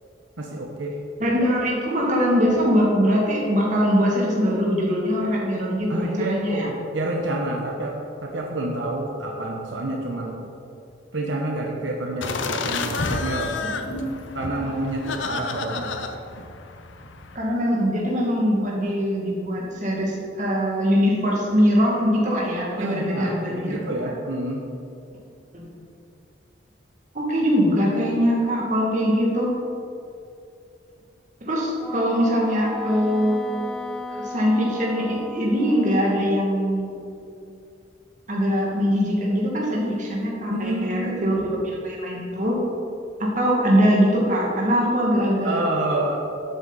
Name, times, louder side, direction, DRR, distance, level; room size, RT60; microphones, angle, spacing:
voice 1, 0.4-1.0 5.9-10.4 11.1-13.6 14.3-16.0 22.7-24.6 40.5-41.4 45.4-46.3, right 1 dB, 85° right, 0 dB, 1.1 m, -28 dB
voice 2, 1.2-6.7 13.8-14.1 17.3-23.6 23.9-24.0 25.5-25.7 27.1-29.5 31.4-37.5 38.3-42.6 43.2-45.6, equal, 40° right, -3 dB, 2.3 m, -22 dB
sound 1, 12.2-17.4, left 4 dB, 85° left, 0.8 m, -30 dB
Wind instrument woodwind instrument, 31.8-36.3, left 2 dB, 5° left, 0.4 m, -36 dB
12.0 x 8.1 x 4.2 m, 2.6 s
head